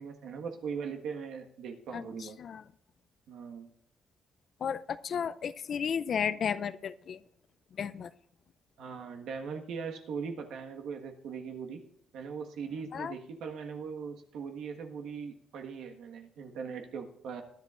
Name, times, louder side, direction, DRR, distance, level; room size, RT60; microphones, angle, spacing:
voice 1, 0.0-2.4 3.3-3.7 8.8-11.8 12.1-17.4, right 6 dB, 80° right, 4 dB, 1.5 m, -40 dB
voice 2, 1.9-2.6 4.6-7.2 7.7-8.1 12.9-13.2, left 7 dB, 55° left, 14 dB, 0.5 m, -34 dB
20.5 x 11.0 x 2.5 m, 0.71 s
cardioid pair, 90°, 0 cm